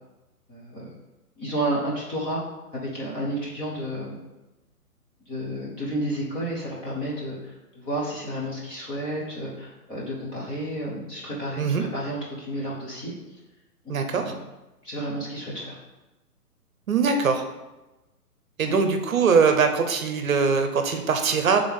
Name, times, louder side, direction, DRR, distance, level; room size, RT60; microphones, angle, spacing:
voice 1, 0.5-0.9 1.4-2.4 2.7-4.2 5.3-13.1 14.1-14.4 14.8-15.8 18.6-18.7, right 1 dB, 10° left, -6 dB, 0.8 m, -31 dB
voice 2, 13.9-14.2 16.9-17.4 18.6-21.6, right 5 dB, 60° right, 6 dB, 0.8 m, -22 dB
7.8 x 3.6 x 3.6 m, 1.1 s
figure-of-eight pair, 135°, 46 cm